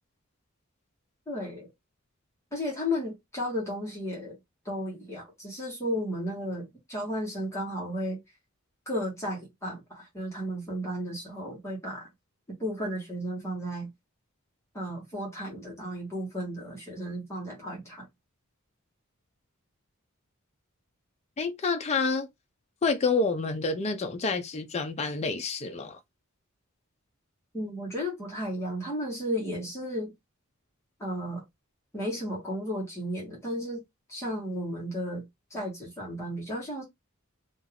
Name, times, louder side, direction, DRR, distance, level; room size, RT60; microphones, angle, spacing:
voice 1, 1.3-1.7 2.5-4.4 4.6-8.2 8.9-12.1 12.6-13.9 14.7-18.1 27.5-30.1 31.0-31.4 31.9-33.8 34.1-36.8, equal, 15° left, 1.1 m, -34 dB
voice 2, 21.4-22.3 22.8-26.0, left 4 dB, 30° left, 0.4 m, -28 dB
2.6 x 2.3 x 3.3 m
head